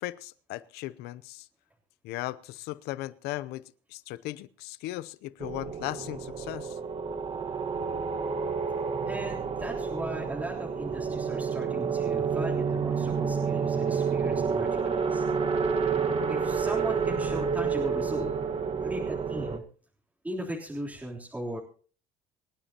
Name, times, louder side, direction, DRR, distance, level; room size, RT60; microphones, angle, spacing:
voice 1, 0.0-1.5 2.0-3.6 3.9-6.8, left 17 dB, 80° left, 0.7 m, -37 dB
sound 1, 5.4-19.6, right 5 dB, 35° right, 1.6 m, -29 dB
voice 2, 9.1-15.2 16.3-18.3 18.8-19.6 20.2-21.6, right 1 dB, 10° right, 3.5 m, -38 dB
26.5 x 10.0 x 3.0 m
cardioid pair, 95°, 17 cm